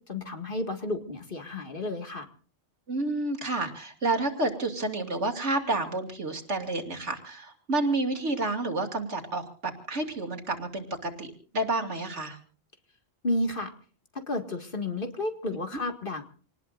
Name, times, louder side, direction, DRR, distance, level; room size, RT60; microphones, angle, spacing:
voice 1, 0.1-2.3 13.2-13.7 14.1-16.2, left 2 dB, 50° left, 6 dB, 2.2 m, -31 dB
voice 2, 2.9-12.4, right 2 dB, 80° right, 5 dB, 3.0 m, -30 dB
27.0 x 19.5 x 2.5 m, 0.42 s
omnidirectional pair, 1.2 m